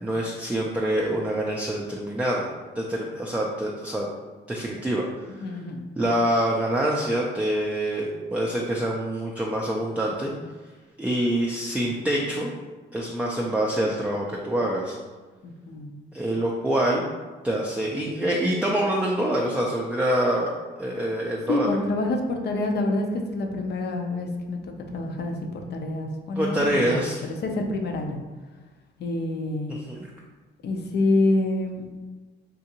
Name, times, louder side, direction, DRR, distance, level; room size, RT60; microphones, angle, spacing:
voice 1, 0.0-2.4 2.8-4.1 4.5-5.0 5.5-5.6 6.0-10.3 11.0-12.5 12.9-15.0 16.1-17.0 17.4-20.5 20.8-21.7 26.4-27.3 29.7-30.0, right 1 dB, 5° right, -2 dB, 0.4 m, -25 dB
voice 2, 5.4-5.8 15.4-15.9 21.5-27.1 27.4-28.2 29.0-29.7 30.6-31.8, left 2 dB, 55° left, 3 dB, 0.6 m, -27 dB
3.7 x 2.5 x 2.8 m, 1.3 s
cardioid pair, 90°, 20 cm